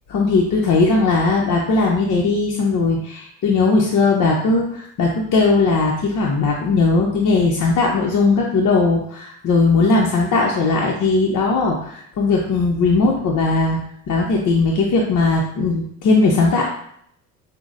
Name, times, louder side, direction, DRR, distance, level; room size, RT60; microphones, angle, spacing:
voice 1, 0.1-13.8 14.1-16.7, left 3 dB, 45° left, -1 dB, 0.7 m, -18 dB
5.8 x 2.1 x 2.5 m, 0.67 s
hypercardioid pair, 60°, 45 cm